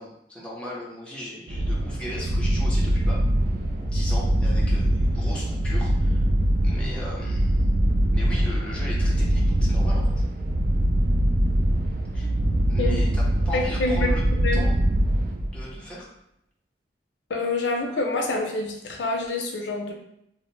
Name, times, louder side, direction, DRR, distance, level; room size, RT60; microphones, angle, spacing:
voice 1, 0.0-3.2 3.8-6.2 6.6-7.7 8.1-10.2 12.1-12.3 12.7-14.2 14.5-14.8 15.5-16.1, equal, 5° left, -6 dB, 0.6 m, -38 dB
sound 1, 1.5-15.7, right 1 dB, 55° right, 0.4 m, -23 dB
voice 2, 13.5-14.7 17.3-19.9, left 2 dB, 85° left, 1 dB, 0.5 m, -27 dB
2.6 x 2.0 x 3.1 m, 0.78 s
head